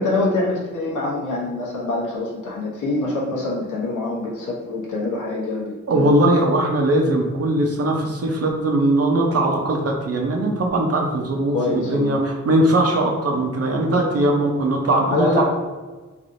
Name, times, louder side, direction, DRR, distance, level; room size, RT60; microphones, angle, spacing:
voice 1, 0.0-6.1 11.5-12.2 15.0-15.4, left 2 dB, 90° left, -5 dB, 0.9 m, -25 dB
voice 2, 5.9-15.4, right 1 dB, 55° right, 1 dB, 0.7 m, -20 dB
3.3 x 2.6 x 2.6 m, 1.3 s
wide cardioid pair, 85°, 30 cm